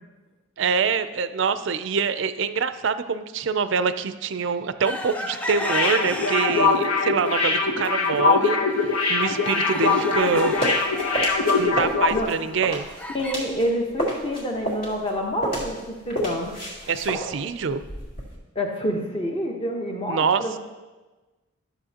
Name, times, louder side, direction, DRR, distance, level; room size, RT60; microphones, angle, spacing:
voice 1, 0.6-10.5 11.6-12.9 16.9-17.8 20.1-20.4, right 5 dB, 60° right, 12 dB, 0.4 m, -25 dB
sound 1, 4.8-6.8 7.3-7.9 8.3-8.4 8.7-13.3, left 1 dB, 5° left, 0.3 m, -33 dB
sound 2, 5.6-12.2 12.5-12.6, left 4 dB, 75° left, 1.0 m, -22 dB
sound 3, 10.1-13.7 13.9-18.4, right 1 dB, 50° left, 2.3 m, -30 dB
voice 2, 13.1-16.5 18.5-20.6, equal, 25° left, 1 dB, 1.0 m, -27 dB
12.5 x 7.0 x 2.9 m, 1.2 s
head